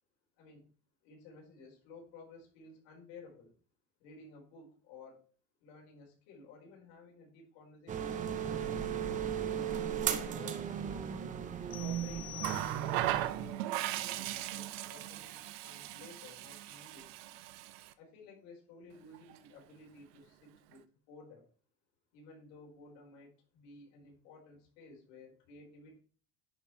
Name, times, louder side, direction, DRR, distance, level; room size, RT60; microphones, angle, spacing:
voice 1, 1.0-3.5 4.0-5.2 5.6-9.3 9.9-10.7 11.8-17.2 18.0-21.5 22.1-26.0, left 3 dB, 65° left, -1 dB, 4.4 m, -55 dB
sound 1, 7.9-13.5, right 8 dB, 25° right, 0.8 m, -36 dB
sound 2, 11.7-13.2, left 19 dB, 30° left, 0.8 m, -47 dB
Water tap faucet, 12.4-17.9 19.1-19.4, right 14 dB, 85° right, 0.8 m, -37 dB
10.0 x 5.3 x 4.5 m, 0.40 s
cardioid pair, 170°, 30 cm